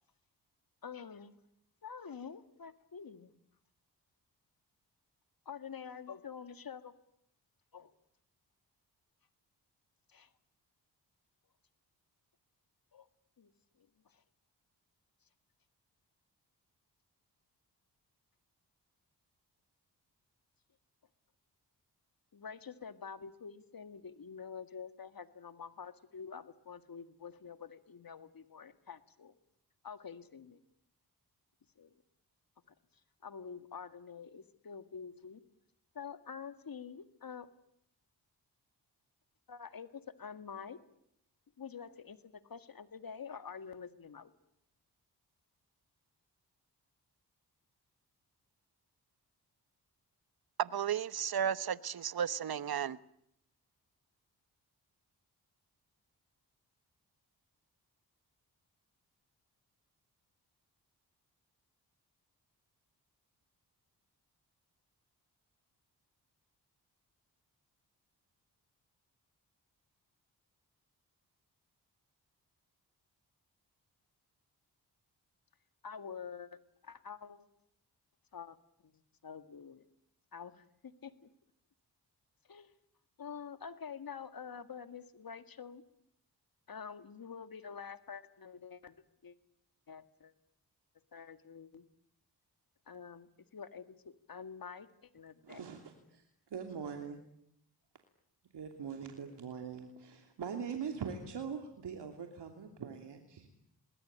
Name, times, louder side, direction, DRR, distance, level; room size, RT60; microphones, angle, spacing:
voice 1, 0.8-1.4 1.8-3.3 5.5-6.9 7.7-7.9 10.1-10.3 12.9-13.1 13.4-13.5 13.8-13.9 14.1-14.2 22.3-29.3 29.8-30.6 31.8-31.9 33.2-35.4 35.9-37.5 39.5-40.8 41.6-44.3 75.8-77.5 78.3-78.6 78.8-78.9 79.2-79.8 80.3-81.3 82.5-82.7 83.2-85.8 86.7-89.0 89.2-89.3 89.9-90.3 91.1-91.8 92.9-95.6, left 6 dB, 55° left, 2.1 m, -47 dB
voice 2, 50.6-53.0, right 8 dB, 60° right, 1.1 m, -34 dB
voice 3, 95.4-97.2 98.5-103.7, right 6 dB, 75° right, 3.0 m, -42 dB
27.5 x 20.5 x 8.9 m
cardioid pair, 55°, 41 cm